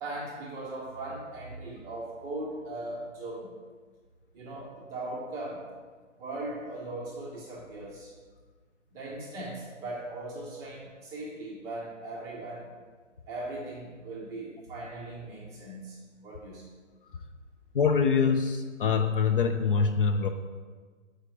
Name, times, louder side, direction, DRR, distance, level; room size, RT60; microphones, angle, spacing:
voice 1, 0.0-3.5 4.3-5.6 6.2-8.1 8.9-12.7 13.3-16.6, right 2 dB, 10° right, -4 dB, 0.6 m, -39 dB
voice 2, 17.7-20.3, left 5 dB, 45° left, 6 dB, 0.4 m, -24 dB
6.5 x 4.9 x 4.7 m, 1.5 s
hypercardioid pair, 145°, 39 cm